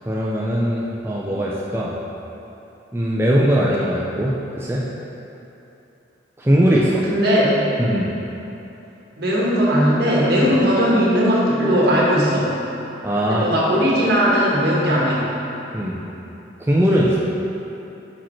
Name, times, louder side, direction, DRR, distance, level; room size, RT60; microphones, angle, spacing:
voice 1, 0.1-1.9 2.9-4.8 6.4-6.9 7.8-8.1 13.0-13.5 15.7-16.0 16.7-17.2, equal, 10° right, -6 dB, 0.4 m, -20 dB
voice 2, 6.7-7.7 9.2-12.5 13.2-15.3, equal, 60° right, -6 dB, 1.3 m, -18 dB
5.8 x 5.0 x 4.4 m, 3.0 s
head